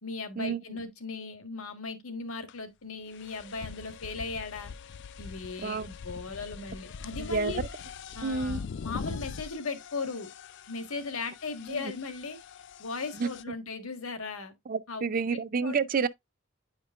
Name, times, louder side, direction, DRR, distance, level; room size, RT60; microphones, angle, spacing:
voice 1, 0.0-4.7 5.2-7.6 8.1-10.3 10.7-12.4 12.8-14.5 14.9-15.0 15.6-15.8, left 4 dB, 85° left, 1.5 m, -37 dB
sound 1, 2.5-2.6 3.1-13.4, left 6 dB, 55° left, 0.4 m, -42 dB
voice 2, 7.2-7.7 8.2-8.6 11.7-11.9 13.2-13.3 14.7-16.1, right 5 dB, 40° right, 0.4 m, -29 dB
9.4 x 5.1 x 2.4 m
head